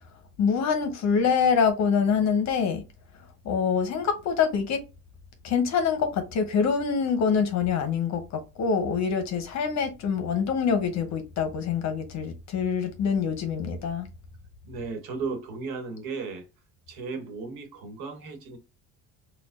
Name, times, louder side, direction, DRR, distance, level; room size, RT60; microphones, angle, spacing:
voice 1, 0.4-2.8 3.4-4.8 5.4-14.1, left 6 dB, 50° left, 0.7 m, -25 dB
voice 2, 14.6-16.5 16.9-18.6, right 4 dB, 80° right, 1.1 m, -35 dB
4.2 x 2.2 x 2.5 m
cardioid pair, 125°, 36 cm